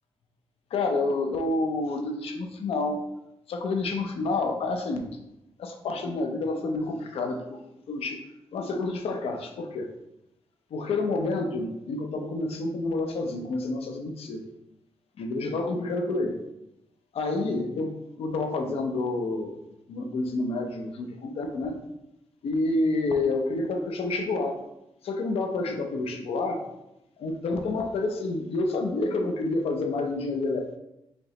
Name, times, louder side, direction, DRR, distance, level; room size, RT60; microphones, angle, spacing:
voice 1, 0.7-3.0 3.5-5.1 5.6-7.6 7.9-8.2 8.5-9.9 10.7-14.4 15.2-16.4 17.1-19.6 19.9-21.8 22.4-24.6 25.0-26.6 27.2-30.7, left 2 dB, 85° left, 4 dB, 0.7 m, -28 dB
5.0 x 2.9 x 3.2 m, 0.86 s
wide cardioid pair, 140°, 10 cm